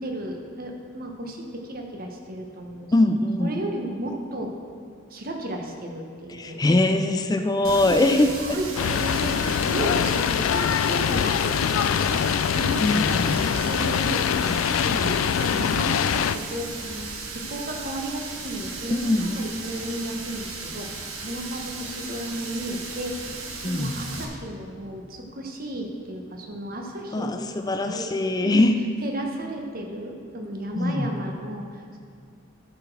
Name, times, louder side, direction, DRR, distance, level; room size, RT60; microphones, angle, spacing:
voice 1, 0.0-2.9 3.4-4.5 5.1-6.6 7.8-8.0 8.4-23.2 23.6-27.5 27.8-28.1 28.4-28.6 29.0-32.0, right 1 dB, 45° right, 2 dB, 1.2 m, -34 dB
voice 2, 2.9-3.5 6.3-8.6 12.8-13.4 18.9-19.4 23.6-23.9 27.1-28.8 30.8-31.1, left 2 dB, 20° left, 7 dB, 0.4 m, -22 dB
Water tap faucet, 7.6-24.3, right 4 dB, 90° right, 1.2 m, -36 dB
sound 1, 8.8-16.4, left 8 dB, 85° left, 0.3 m, -23 dB
11.5 x 5.0 x 6.1 m, 2.2 s
head